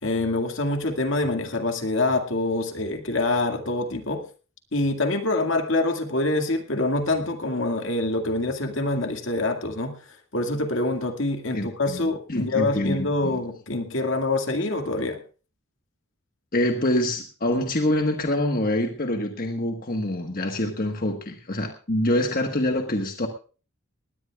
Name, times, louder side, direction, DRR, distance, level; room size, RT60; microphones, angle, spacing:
voice 1, 0.0-4.2 4.7-10.0 10.3-15.2, left 2 dB, 65° left, 6 dB, 2.1 m, -25 dB
voice 2, 11.5-13.4 16.5-23.3, left 1 dB, 45° left, 4 dB, 1.4 m, -25 dB
20.0 x 17.0 x 2.4 m, 0.36 s
head